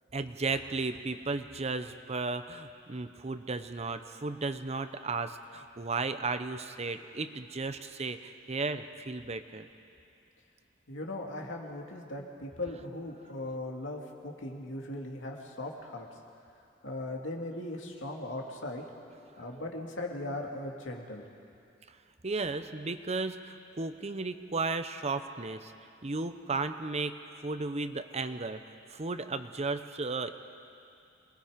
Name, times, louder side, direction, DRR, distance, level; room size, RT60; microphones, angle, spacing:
voice 1, 0.1-9.7 19.4-19.6 22.2-25.7 26.0-28.6 28.9-30.3, right 3 dB, 35° right, 10 dB, 0.8 m, -34 dB
voice 2, 10.9-16.1 16.8-18.8 19.4-21.2, left 1 dB, 90° left, 0 dB, 2.5 m, -38 dB
28.0 x 20.0 x 5.2 m, 2.6 s
head